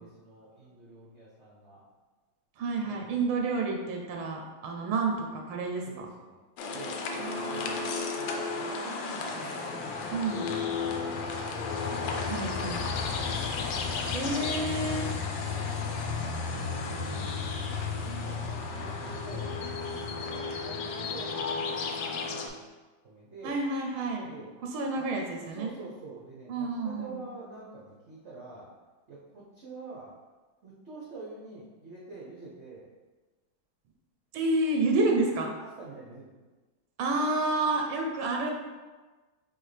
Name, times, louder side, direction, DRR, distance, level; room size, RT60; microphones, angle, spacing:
voice 1, 0.0-1.8 2.8-3.1 5.8-7.8 8.2-9.7 10.0-11.8 12.3-13.6 14.2-14.6 15.3-17.4 18.0-22.6 23.0-23.6 24.2-24.5 24.9-25.1 25.4-28.7 29.1-30.1 30.6-32.9 35.6-36.3, right 3 dB, 65° right, -6 dB, 0.6 m, -47 dB
voice 2, 2.6-6.1 7.1-8.0 10.1-10.5 12.3-12.8 14.1-15.1 23.4-24.3 24.7-25.7 26.5-27.2 34.3-35.5 37.0-38.5, right 2 dB, 90° right, 1 dB, 1.5 m, -29 dB
sound 1, 6.6-22.5, left 4 dB, 75° left, 1.2 m, -33 dB
4.6 x 3.3 x 3.2 m, 1.3 s
omnidirectional pair, 2.3 m